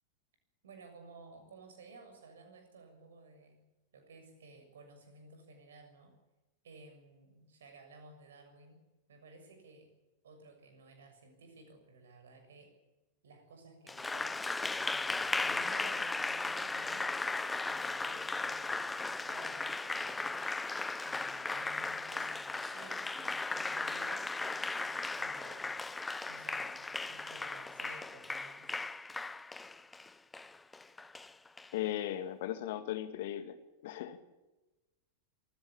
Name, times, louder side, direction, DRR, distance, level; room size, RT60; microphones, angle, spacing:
voice 1, 0.6-3.6 3.9-6.1 6.6-8.8 9.1-9.9 10.2-12.7 13.2-14.3 14.6-17.4 17.6-20.5 21.0-28.7, right 3 dB, 65° right, 6 dB, 6.8 m, -56 dB
Applause, 13.9-31.7, left 3 dB, 10° left, 0.8 m, -37 dB
voice 2, 31.7-33.6 33.8-34.2, left 12 dB, 55° left, 10 dB, 2.2 m, -37 dB
25.5 x 16.0 x 8.8 m, 1.1 s
figure-of-eight pair, 90°, 0 cm